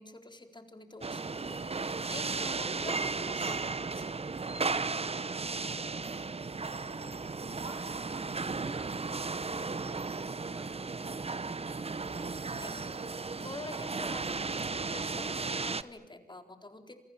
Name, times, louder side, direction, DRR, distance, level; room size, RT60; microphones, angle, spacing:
voice 1, 0.0-4.1 12.6-17.0, left 2 dB, 30° left, 6 dB, 4.1 m, -47 dB
sound 1, 1.0-15.8, right 4 dB, 40° right, 1.1 m, -35 dB
voice 2, 6.9-10.8, right 1 dB, 10° right, 7 dB, 3.0 m, -55 dB
28.5 x 28.0 x 7.3 m, 0.90 s
wide cardioid pair, 95°, 16 cm